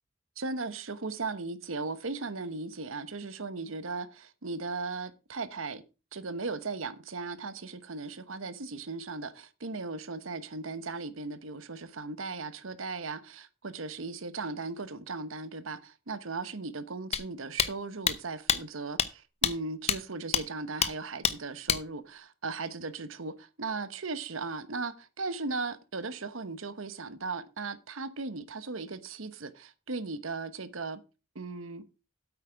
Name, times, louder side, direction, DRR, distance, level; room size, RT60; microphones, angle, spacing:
voice 1, 0.4-5.8 6.1-31.0 31.3-31.8, right 3 dB, 85° right, 1.1 m, -37 dB
sound 1, 17.1-17.2 17.6-17.7 18.1-18.2 18.5-18.6 19.0-19.1 19.4-19.5 19.9-20.0 20.3-20.4 20.8-20.9 21.2-21.3 21.7-21.8, left 8 dB, 30° left, 0.7 m, -25 dB
9.0 x 8.4 x 4.7 m
head